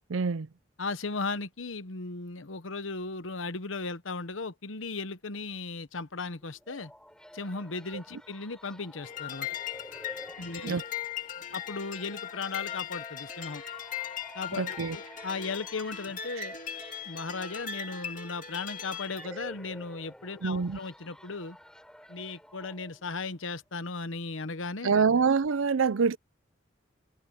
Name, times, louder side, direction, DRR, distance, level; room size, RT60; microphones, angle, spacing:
voice 1, 0.1-0.5 10.6-10.8 14.6-15.0 16.4-16.5 20.4-20.8 24.8-26.2, right 5 dB, 90° right, 0.6 m, -25 dB
voice 2, 0.8-6.9 7.3-9.5 10.4-10.8 11.5-13.6 14.3-16.6 17.1-21.6 22.1-25.1, left 4 dB, 85° left, 1.1 m, -36 dB
sound 1, 6.4-23.3, equal, 5° left, 3.8 m, -51 dB
sound 2, 9.0-19.3, left 9 dB, 40° left, 2.8 m, -39 dB
head